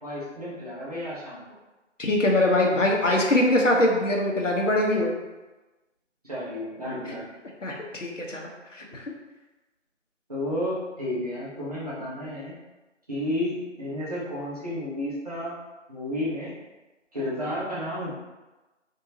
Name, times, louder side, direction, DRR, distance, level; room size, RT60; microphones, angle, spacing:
voice 1, 0.0-1.4 6.2-7.3 10.3-12.5 13.1-15.6 15.9-16.5 17.1-18.1, left 1 dB, 30° right, -9 dB, 1.3 m, -31 dB
voice 2, 2.0-5.2 7.6-9.0, left 1 dB, 75° left, -1 dB, 1.2 m, -23 dB
3.9 x 3.5 x 2.9 m, 1.1 s
figure-of-eight pair, 175°, 37 cm